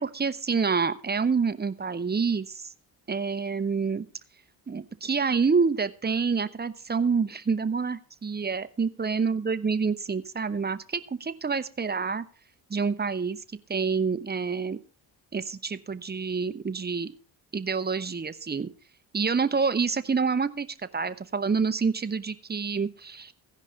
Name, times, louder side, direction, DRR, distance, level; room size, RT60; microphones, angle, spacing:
voice 1, 0.0-2.7 3.1-4.1 4.7-12.2 12.7-13.4 13.7-14.8 15.3-17.1 17.5-18.7 19.1-23.3, right 5 dB, 20° right, 12 dB, 0.8 m, -27 dB
16.0 x 5.4 x 5.2 m, 0.40 s
cardioid pair, 70°, 45 cm